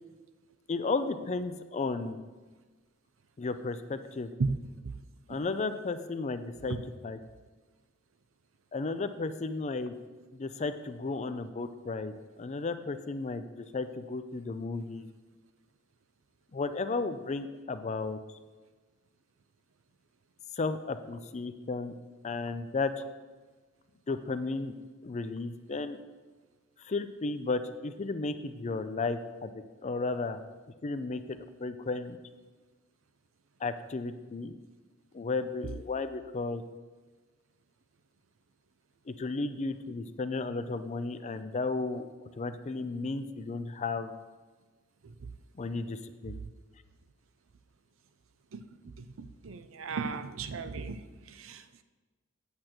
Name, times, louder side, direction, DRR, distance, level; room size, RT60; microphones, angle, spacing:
voice 1, 0.7-2.2 3.4-4.3 5.3-6.8 7.0-7.2 8.7-9.9 10.3-15.1 16.5-18.2 20.6-21.9 22.2-22.9 24.1-24.7 25.0-26.0 26.8-30.4 30.8-32.2 33.6-34.5 35.1-36.6 39.1-42.1 42.4-44.1 45.5-46.4, left 3 dB, 35° left, 11 dB, 0.4 m, -34 dB
voice 2, 4.4-5.0 5.3-5.4 6.7-6.8 45.0-45.3 48.5-51.8, right 4 dB, 75° right, 10 dB, 0.5 m, -36 dB
8.6 x 7.7 x 4.4 m, 1.3 s
head